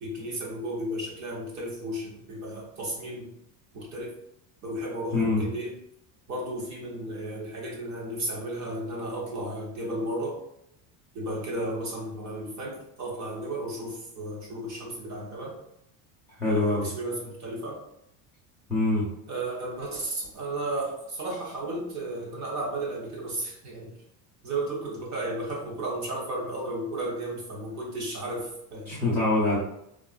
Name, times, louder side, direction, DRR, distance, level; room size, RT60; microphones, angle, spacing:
voice 1, 0.0-3.3 3.7-4.1 4.6-5.8 6.3-10.4 11.1-15.6 16.5-17.8 19.3-23.9 24.4-29.0, right 1 dB, 40° right, -2 dB, 0.8 m, -33 dB
voice 2, 5.1-5.5 16.4-16.9 18.7-19.0 28.9-29.6, left 2 dB, 5° left, -7 dB, 0.5 m, -24 dB
3.5 x 2.4 x 2.3 m, 0.78 s
cardioid pair, 160°, 44 cm